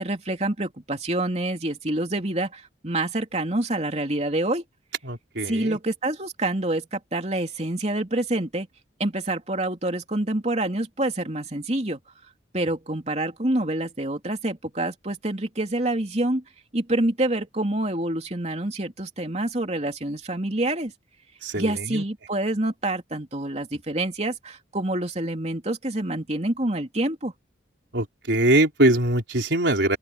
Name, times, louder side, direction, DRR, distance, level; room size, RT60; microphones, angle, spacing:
voice 1, 0.0-4.6 5.4-8.7 9.0-12.0 12.5-16.4 16.7-20.9 21.5-27.3, right 1 dB, 35° right, 3.2 m, -27 dB
voice 2, 5.0-5.8 21.4-22.0 27.9-30.0, right 1 dB, 75° right, 4.0 m, -22 dB
open air
head